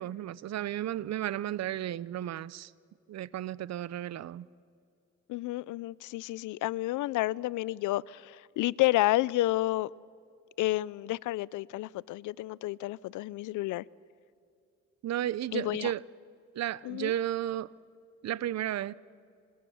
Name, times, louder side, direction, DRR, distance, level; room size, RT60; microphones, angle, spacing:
voice 1, 0.0-2.7 3.1-4.5 15.0-16.0 16.6-17.7 18.2-18.9, right 12 dB, 60° right, 0.7 m, -33 dB
voice 2, 5.3-9.9 10.6-13.8 15.5-15.9 16.8-17.1, left 17 dB, 85° left, 0.6 m, -30 dB
27.0 x 26.5 x 7.1 m
cardioid pair, 90°, 30 cm